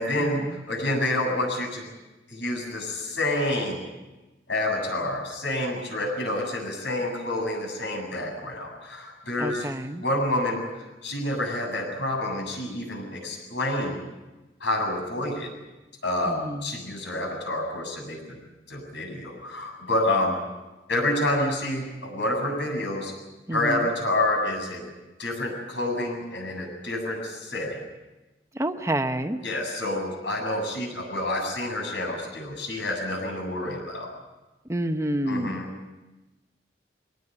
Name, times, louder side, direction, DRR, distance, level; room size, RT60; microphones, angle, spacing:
voice 1, 0.0-1.8 2.3-3.8 4.5-9.7 10.0-10.6 11.0-14.0 14.6-15.5 16.0-18.4 18.7-20.3 20.9-23.1 23.5-24.9 25.2-27.8 29.4-34.1 35.2-35.7, left 1 dB, 90° left, 2 dB, 7.8 m, -28 dB
voice 2, 9.4-10.0 16.3-16.7 23.5-23.9 28.5-29.4 34.7-35.6, right 1 dB, 15° right, 8 dB, 0.9 m, -28 dB
23.0 x 19.0 x 9.7 m, 1.1 s
head